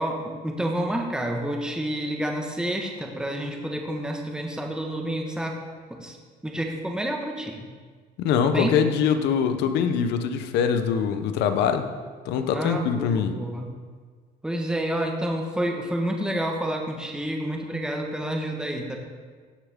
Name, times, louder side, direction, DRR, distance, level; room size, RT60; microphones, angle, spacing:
voice 1, 0.0-5.6 6.0-6.2 6.4-7.6 8.4-8.7 12.5-13.7 14.4-19.0, right 1 dB, 5° right, 1 dB, 1.4 m, -29 dB
voice 2, 8.2-11.9 12.2-13.4, left 7 dB, 85° left, 8 dB, 0.8 m, -23 dB
16.5 x 6.9 x 3.7 m, 1.6 s
cardioid pair, 110°, 17 cm